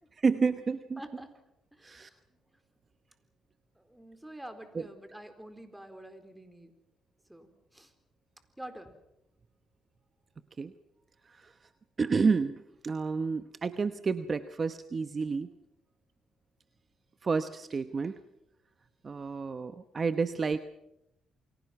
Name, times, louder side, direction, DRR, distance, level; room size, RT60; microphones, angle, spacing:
voice 1, 0.2-1.0 1.8-2.1 4.7-4.9 10.6-10.7 11.2-11.6 12.0-15.5 17.2-18.2 19.0-20.6, right 5 dB, 35° right, 10 dB, 1.1 m, -30 dB
voice 2, 1.0-1.3 1.7-2.2 3.8-6.7 7.3-7.9 8.6-9.0, right 1 dB, 5° right, 8 dB, 4.1 m, -47 dB
29.0 x 23.0 x 6.0 m, 0.85 s
cardioid pair, 90°, 0 cm